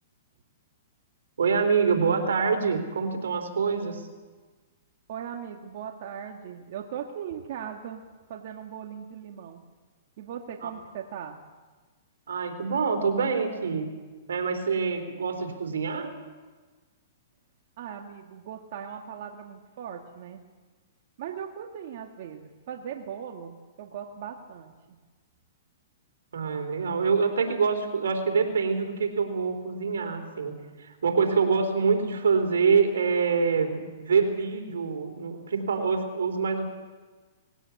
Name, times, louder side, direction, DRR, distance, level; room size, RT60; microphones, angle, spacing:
voice 1, 1.4-4.1 10.6-10.7 12.3-13.9 14.3-16.1 26.3-36.7, right 5 dB, 85° right, 5 dB, 3.7 m, -25 dB
voice 2, 5.1-8.0 8.3-9.6 10.2-11.4 17.8-20.4 21.2-25.0, right 8 dB, 55° right, 2 dB, 2.0 m, -39 dB
20.0 x 17.0 x 8.5 m, 1.3 s
hypercardioid pair, 135°, 0 cm